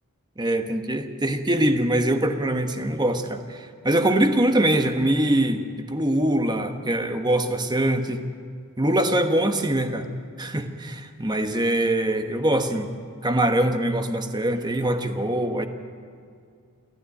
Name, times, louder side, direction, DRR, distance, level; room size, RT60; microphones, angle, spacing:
voice 1, 0.4-8.3 8.8-10.1 10.4-12.9 13.2-15.7, right 1 dB, 20° right, 6 dB, 1.2 m, -23 dB
28.5 x 10.0 x 9.9 m, 2.3 s
head